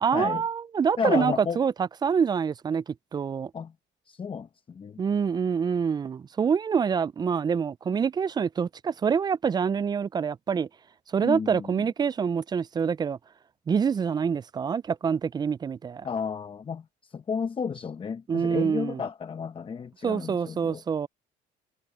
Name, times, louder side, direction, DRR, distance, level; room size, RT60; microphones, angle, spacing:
voice 1, 0.0-3.5 5.0-10.7 11.1-13.2 13.7-16.1 18.3-19.0 20.0-21.1, right 6 dB, 25° right, 0.3 m, -26 dB
voice 2, 1.0-1.6 3.5-3.7 4.1-5.0 11.2-11.9 16.0-20.8, left 6 dB, 30° left, 0.8 m, -32 dB
cardioid pair, 110°, 17 cm